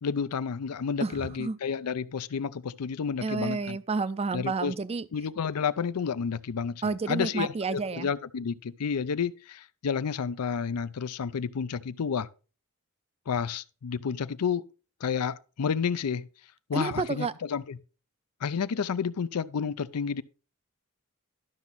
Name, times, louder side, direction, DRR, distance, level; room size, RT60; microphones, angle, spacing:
voice 1, 0.0-3.8 4.3-4.7 5.1-12.3 13.3-14.6 15.0-16.3 16.7-17.8 18.4-20.2, left 6 dB, 85° left, 0.5 m, -30 dB
voice 2, 1.0-1.6 3.2-5.1 6.8-8.1 16.7-17.3, right 4 dB, 25° right, 0.4 m, -30 dB
12.0 x 6.0 x 4.0 m
head